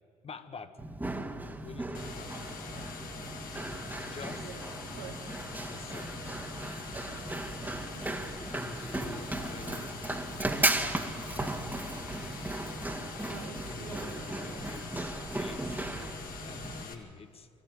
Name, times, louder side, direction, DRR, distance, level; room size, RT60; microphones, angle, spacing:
voice 1, 0.2-0.8 1.4-3.1 4.0-4.5 5.6-6.4 7.0-7.5 8.4-10.0 10.6-11.8 13.6-17.5, left 4 dB, 35° left, 10 dB, 1.5 m, -48 dB
Run, 0.8-16.8, right 2 dB, 10° right, 2.1 m, -36 dB
sound 1, 1.9-16.9, left 5 dB, 60° left, 2.5 m, -44 dB
voice 2, 4.4-5.2 13.2-14.7, right 9 dB, 85° right, 5 dB, 1.0 m, -49 dB
24.0 x 14.0 x 9.4 m, 2.2 s
hypercardioid pair, 60°, 16 cm